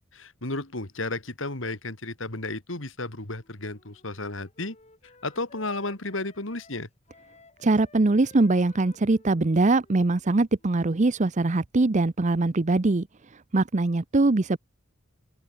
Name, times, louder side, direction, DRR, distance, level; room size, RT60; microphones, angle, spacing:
voice 1, 0.1-4.7 5.2-6.9, left 2 dB, 70° left, 3.4 m, -33 dB
Wind instrument woodwind instrument, 3.1-11.1, left 3 dB, 35° left, 6.8 m, -56 dB
voice 2, 7.6-13.1 13.5-14.6, right 2 dB, 35° right, 0.7 m, -22 dB
head